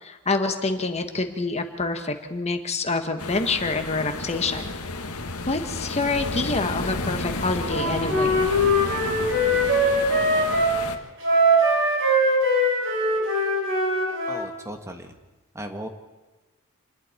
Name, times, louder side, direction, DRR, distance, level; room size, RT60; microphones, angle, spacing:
voice 1, 0.0-4.7 5.5-8.5, left 3 dB, 30° left, 6 dB, 1.7 m, -27 dB
sound 1, 3.2-11.0, left 3 dB, 85° left, 2.0 m, -32 dB
Wind instrument woodwind instrument, 7.7-10.7 11.2-14.5, equal, 60° right, 5.1 m, -21 dB
voice 2, 14.3-15.1 15.5-15.9, right 1 dB, 15° right, 5 dB, 1.5 m, -36 dB
28.5 x 21.0 x 4.6 m, 1.2 s
head